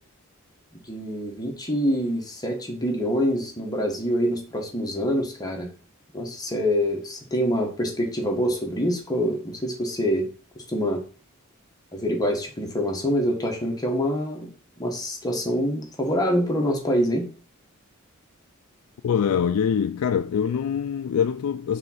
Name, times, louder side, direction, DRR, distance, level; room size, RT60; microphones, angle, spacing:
voice 1, 0.8-5.7 6.1-10.3 10.7-11.0 11.9-14.5 14.8-17.3, equal, 15° left, 1.3 m, -25 dB
voice 2, 19.0-21.8, left 7 dB, 80° left, 0.3 m, -24 dB
5.4 x 3.6 x 5.8 m
head